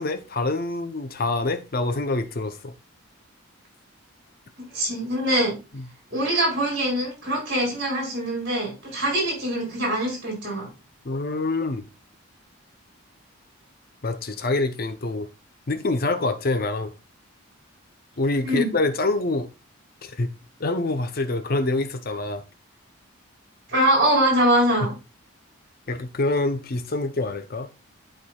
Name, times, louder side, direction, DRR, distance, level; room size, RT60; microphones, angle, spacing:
voice 1, 0.0-2.7 5.7-5.9 11.0-11.8 14.0-15.3 15.7-16.9 18.2-19.5 20.0-20.3 20.6-22.4 25.9-27.7, left 2 dB, 45° left, 0.6 m, -26 dB
voice 2, 4.7-5.5 6.1-10.7 18.4-18.7 23.7-24.9, right 1 dB, 50° right, 4.3 m, -23 dB
11.5 x 4.6 x 2.3 m
head